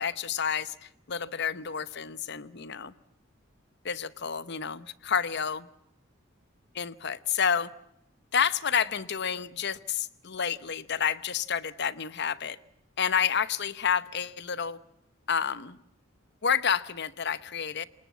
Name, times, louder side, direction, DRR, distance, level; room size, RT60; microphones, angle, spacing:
voice 1, 0.0-2.9 3.8-5.7 6.7-7.7 8.3-12.6 13.0-14.8 15.3-15.8 16.4-17.8, left 7 dB, 55° left, 16 dB, 0.9 m, -29 dB
28.0 x 20.0 x 7.2 m, 0.80 s
head